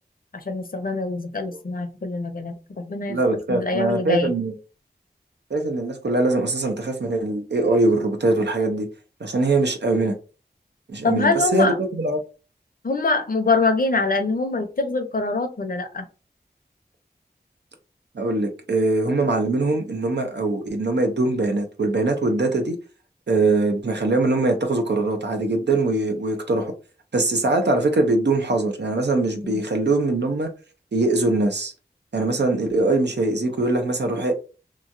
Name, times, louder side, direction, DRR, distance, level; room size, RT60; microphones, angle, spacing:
voice 1, 0.3-3.2 3.5-4.3 11.0-11.8 12.8-16.1 29.4-29.6, left 3 dB, 55° left, 0.6 m, -24 dB
voice 2, 3.1-4.5 5.5-8.9 9.2-10.1 10.9-12.2 18.1-22.8 23.3-26.7 27.1-30.5 30.9-31.7 32.1-34.4, right 2 dB, 85° right, 0.7 m, -22 dB
3.0 x 2.3 x 2.6 m
wide cardioid pair, 45°, 17 cm